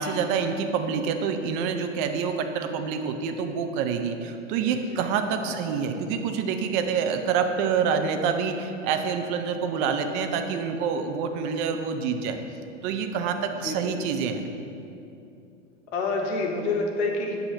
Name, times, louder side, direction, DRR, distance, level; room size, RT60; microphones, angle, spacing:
voice 1, 0.0-12.4 12.8-14.4, right 6 dB, 40° right, 6 dB, 0.5 m, -27 dB
voice 2, 4.5-5.0 5.4-5.6 9.7-9.9 13.6-14.0 15.9-17.4, left 3 dB, 60° left, 1 dB, 1.0 m, -29 dB
7.8 x 2.8 x 5.7 m, 2.7 s
hypercardioid pair, 115°, 38 cm